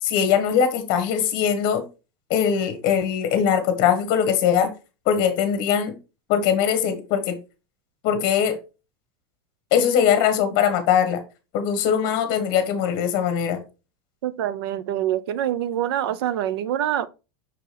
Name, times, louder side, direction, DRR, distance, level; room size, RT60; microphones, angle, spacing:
voice 1, 0.0-1.8 2.3-4.7 5.1-5.9 6.3-7.4 8.0-8.6 9.7-11.2 11.5-13.6, left 8 dB, 35° left, 1.2 m, -21 dB
voice 2, 14.2-17.1, right 11 dB, 80° right, 0.5 m, -25 dB
6.2 x 4.6 x 3.3 m
supercardioid pair, 180°, 13 cm